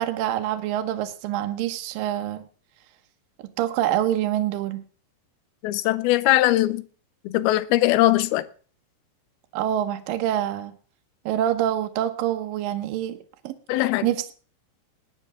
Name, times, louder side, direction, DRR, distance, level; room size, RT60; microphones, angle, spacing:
voice 1, 0.0-2.5 3.6-4.8 9.5-10.8 11.3-13.2 13.4-13.5 14.0-14.3, right 11 dB, 70° right, 2.6 m, -26 dB
voice 2, 5.6-6.8 7.3-8.5 13.7-14.1, left 16 dB, 85° left, 2.6 m, -20 dB
20.0 x 9.7 x 3.6 m
omnidirectional pair, 4.3 m